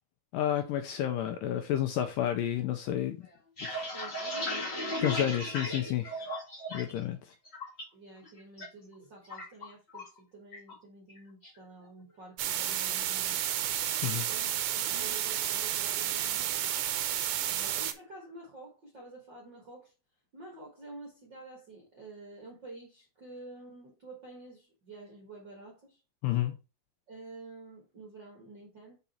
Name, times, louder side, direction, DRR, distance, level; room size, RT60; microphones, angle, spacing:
voice 1, 0.3-3.2 3.6-3.9 5.0-6.3 6.7-7.3 14.0-14.3 26.2-26.5, left 11 dB, 80° left, 2.0 m, -31 dB
sound 1, 3.3-7.0 7.3-7.8 8.2-8.7 8.9-10.2 10.5-10.8 11.1-11.6, left 1 dB, 35° left, 1.0 m, -36 dB
voice 2, 3.9-4.7 7.9-13.4 14.3-16.6 17.4-19.9 20.3-26.0 27.1-29.0, right 2 dB, 55° right, 1.2 m, -49 dB
sound 2, 12.4-17.9, right 11 dB, 80° right, 1.9 m, -31 dB
5.4 x 4.8 x 4.3 m
omnidirectional pair, 4.4 m